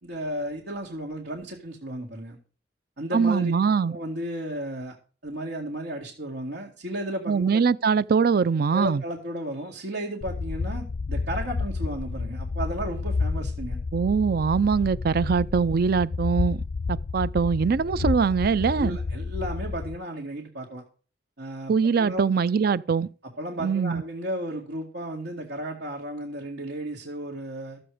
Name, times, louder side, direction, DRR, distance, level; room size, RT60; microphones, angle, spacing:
voice 1, 0.0-2.4 3.0-3.5 3.9-5.0 5.2-7.6 8.7-13.8 18.7-20.8 21.4-22.2 23.4-27.8, right 1 dB, 75° right, 2.3 m, -34 dB
voice 2, 3.1-3.9 7.3-9.0 13.9-16.6 16.9-19.0 21.7-23.1 23.6-24.0, right 5 dB, 55° right, 0.4 m, -22 dB
sound 1, 10.2-20.0, left 4 dB, 50° left, 0.4 m, -30 dB
13.5 x 7.8 x 5.0 m
head